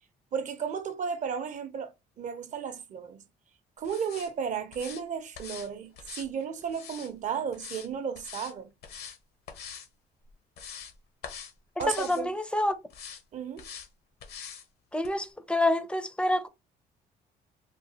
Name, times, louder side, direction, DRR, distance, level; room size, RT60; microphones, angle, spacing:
voice 1, 0.3-3.3 3.8-8.7 11.8-12.3 13.3-13.7, right 7 dB, 45° right, 0.6 m, -34 dB
sound 1, 3.8-4.3 4.7-5.0 5.3-5.7 6.0-7.1 7.5-7.9 8.1-8.5 8.8-9.2 9.5-9.9 10.3-10.9 11.2-11.5 11.8-12.2 12.9-13.2 13.6-13.9 14.2-14.6 15.0-15.1, left 7 dB, 70° left, 0.8 m, -43 dB
voice 2, 11.9-12.7 14.9-16.5, left 1 dB, 5° left, 0.5 m, -27 dB
3.7 x 2.3 x 2.7 m
cardioid pair, 110°, 17 cm